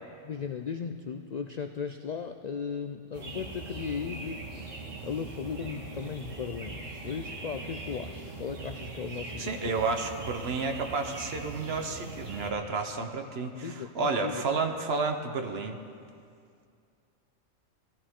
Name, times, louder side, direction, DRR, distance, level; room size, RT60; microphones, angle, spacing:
voice 1, 0.2-4.5 5.0-9.8 13.6-14.5, left 6 dB, 75° left, 7 dB, 0.3 m, -36 dB
sound 1, 3.1-12.5, right 3 dB, 85° right, 2.0 m, -41 dB
voice 2, 9.4-15.8, right 4 dB, 55° right, 6 dB, 1.1 m, -31 dB
17.0 x 14.0 x 3.7 m, 2.4 s
omnidirectional pair, 1.3 m